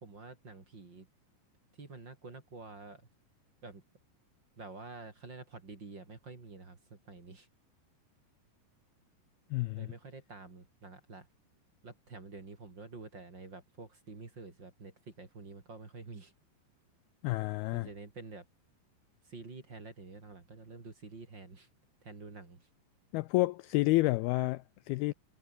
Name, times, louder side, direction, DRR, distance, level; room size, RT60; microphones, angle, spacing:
voice 1, 0.0-1.1 1.8-3.0 3.6-3.8 4.6-7.5 9.7-11.3 11.8-16.3 17.7-18.4 19.2-21.7 22.0-22.7, right 3 dB, 30° right, 3.4 m, -48 dB
voice 2, 9.5-9.9 17.2-17.9 23.1-25.1, left 20 dB, 90° left, 2.1 m, -29 dB
omnidirectional pair, 5.1 m